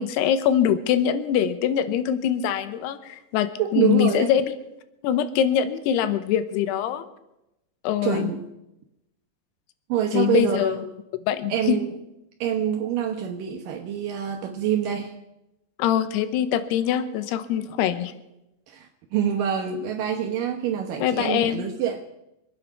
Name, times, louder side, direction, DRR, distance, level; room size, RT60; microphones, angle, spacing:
voice 1, 0.0-4.5 5.0-7.1 7.8-8.3 10.1-10.8 11.3-11.8 15.8-18.1 21.0-21.6, left 10 dB, 75° left, 12 dB, 2.7 m, -23 dB
voice 2, 3.6-4.3 8.0-8.5 9.9-10.8 11.5-11.9 12.4-15.1 18.7-22.0, right 9 dB, 80° right, 3 dB, 1.9 m, -26 dB
25.5 x 9.6 x 5.7 m, 0.91 s
omnidirectional pair, 5.3 m